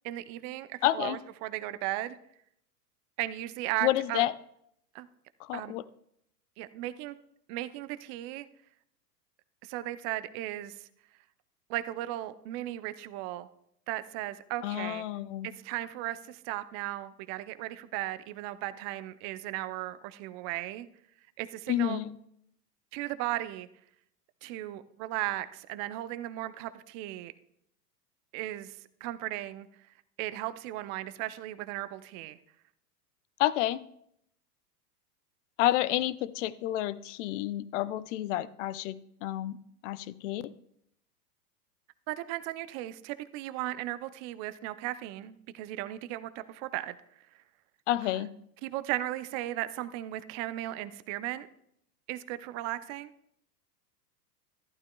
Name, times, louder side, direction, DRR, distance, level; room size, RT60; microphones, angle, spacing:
voice 1, 0.0-2.2 3.2-4.2 4.9-5.1 5.5-5.7 6.6-7.1 7.5-8.5 9.6-10.9 11.7-13.5 13.9-15.1 15.4-20.9 21.4-22.0 22.9-23.7 24.4-27.3 28.3-29.7 30.2-32.4 42.1-47.0 48.1-48.2 48.6-51.5 52.1-53.1, right 15 dB, 35° right, 13 dB, 0.6 m, -36 dB
voice 2, 0.8-1.2 3.8-4.3 5.4-5.8 14.6-15.5 21.7-22.1 33.4-33.8 35.6-39.6 39.8-40.5 47.9-48.3, left 14 dB, 50° left, 17 dB, 0.6 m, -29 dB
14.5 x 11.5 x 2.3 m, 0.72 s
hypercardioid pair, 105°, 49 cm